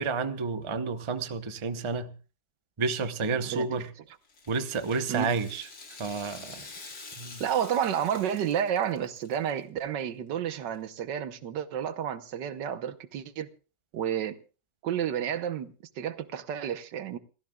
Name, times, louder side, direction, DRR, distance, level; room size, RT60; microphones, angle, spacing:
voice 1, 0.0-2.1 2.8-3.9 4.5-5.7 6.0-6.7 7.2-7.4, right 4 dB, 30° right, 0.6 m, -30 dB
voice 2, 3.4-3.8 5.1-5.3 7.4-13.5 13.9-14.4 14.8-17.2, right 9 dB, 80° right, 1.6 m, -31 dB
Rattle (instrument), 4.2-9.5 9.8-9.9 10.7-10.8, left 3 dB, 65° left, 3.0 m, -47 dB
28.5 x 14.0 x 2.3 m
omnidirectional pair, 1.9 m